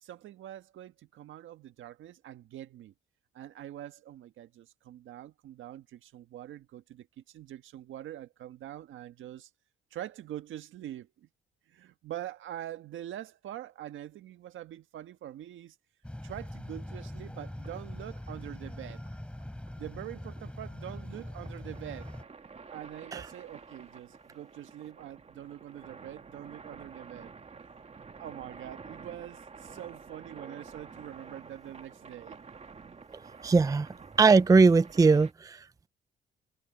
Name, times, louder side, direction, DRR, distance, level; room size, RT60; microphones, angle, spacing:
voice 1, 0.0-2.9 3.3-9.5 9.9-11.3 11.7-15.8 16.2-19.0 19.8-22.1 22.7-27.3 28.2-32.4, right 12 dB, 80° right, 1.6 m, -44 dB
sound 1, 16.0-22.2, left 1 dB, 5° left, 5.1 m, -42 dB
sound 2, 17.0-35.3, right 5 dB, 30° right, 2.0 m, -50 dB
voice 2, 33.4-33.9 34.2-35.6, right 4 dB, 15° right, 0.5 m, -20 dB
cardioid pair, 90°, 20 cm